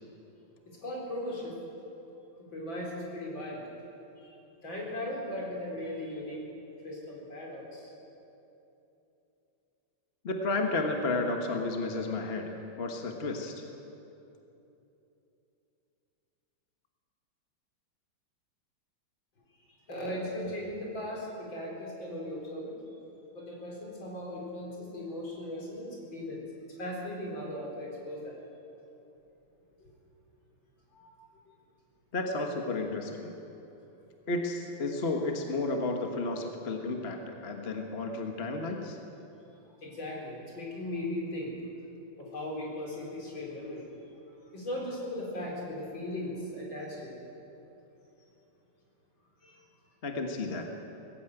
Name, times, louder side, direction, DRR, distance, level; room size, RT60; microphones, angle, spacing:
voice 1, 0.8-1.6 2.5-3.6 4.2-4.4 4.6-6.4 6.8-7.9 19.9-22.8 23.3-26.4 26.8-28.4 29.8-29.9 30.9-31.2 39.8-41.5 42.3-43.8 44.5-47.2 49.4-49.5, left 1 dB, 65° left, -3 dB, 5.0 m, -37 dB
voice 2, 10.2-13.6 32.1-33.3 34.3-39.0 50.0-50.7, left 2 dB, 35° left, 3 dB, 1.4 m, -32 dB
19.0 x 15.0 x 9.1 m, 2.9 s
omnidirectional pair, 2.3 m